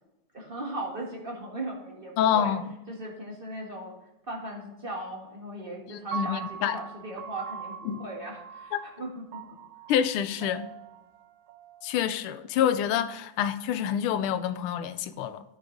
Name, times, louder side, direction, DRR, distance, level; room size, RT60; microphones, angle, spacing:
voice 1, 0.3-2.5 2.9-3.9 4.3-9.4, right 1 dB, 25° right, 1.6 m, -38 dB
voice 2, 2.2-2.7 5.9-6.8 7.9-8.0 8.7-8.8 9.9-10.7 11.8-15.4, left 9 dB, 80° left, 1.5 m, -27 dB
Piano, 6.1-12.3, right 6 dB, 70° right, 1.1 m, -41 dB
14.0 x 4.9 x 3.9 m
omnidirectional pair, 2.4 m